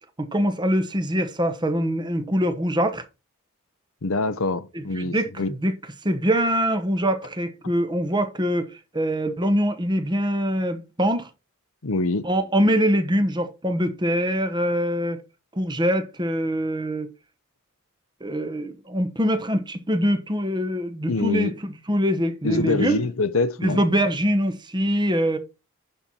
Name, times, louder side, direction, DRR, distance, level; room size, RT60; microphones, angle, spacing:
voice 1, 0.2-3.0 4.9-5.7 6.0-11.3 12.2-15.2 15.5-17.1 18.2-23.0 23.6-25.4, equal, 20° right, 1.0 m, -23 dB
voice 2, 4.0-5.5 11.8-12.3 21.1-21.5 22.4-23.8, left 3 dB, 65° left, 0.7 m, -25 dB
11.0 x 4.3 x 4.3 m
head